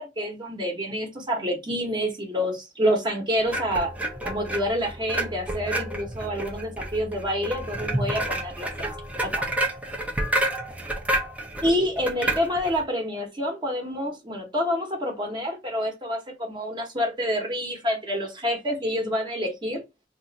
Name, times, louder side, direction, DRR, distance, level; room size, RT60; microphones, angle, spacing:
voice 1, 0.0-3.9 4.2-8.7 9.2-9.5 11.6-19.8, equal, 25° right, 0.9 m, -27 dB
sound 1, 3.5-12.8, right 1 dB, 10° right, 0.5 m, -30 dB
2.4 x 2.4 x 3.9 m
head